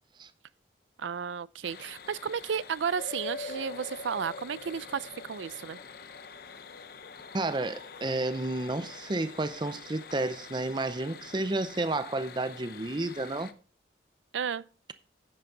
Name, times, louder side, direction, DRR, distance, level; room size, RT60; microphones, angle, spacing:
voice 1, 1.0-5.8 14.3-14.6, right 7 dB, 80° right, 0.5 m, -33 dB
sound 1, 1.6-13.5, left 5 dB, 55° left, 0.7 m, -45 dB
voice 2, 7.3-13.5, right 2 dB, 25° right, 0.6 m, -31 dB
10.5 x 8.9 x 3.8 m
head